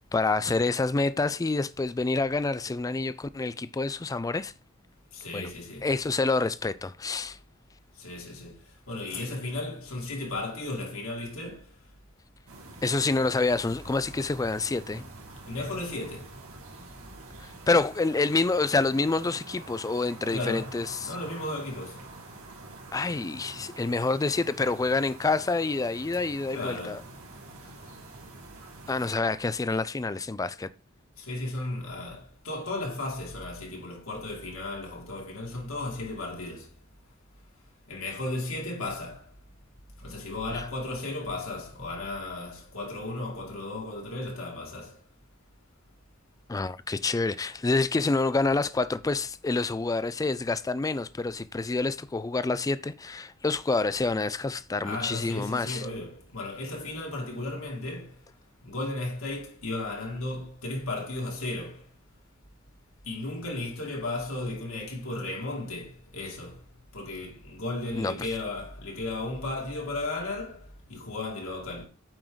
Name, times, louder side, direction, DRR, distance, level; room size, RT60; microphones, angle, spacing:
voice 1, 0.1-4.5 5.3-5.5 5.8-7.4 12.8-15.0 17.4-21.1 22.9-27.0 28.9-30.7 40.5-40.6 46.5-55.8 68.0-68.3, left 3 dB, 15° left, 0.3 m, -27 dB
voice 2, 5.1-5.9 8.0-8.6 8.9-11.8 15.5-16.4 20.3-22.1 26.5-27.1 31.2-36.7 37.9-39.3 40.0-45.0 54.8-58.2 58.6-61.9 63.0-66.6 66.9-71.9, left 2 dB, 75° left, 2.4 m, -35 dB
sound 1, 12.5-29.2, right 2 dB, 85° right, 2.2 m, -46 dB
8.8 x 4.6 x 3.9 m
head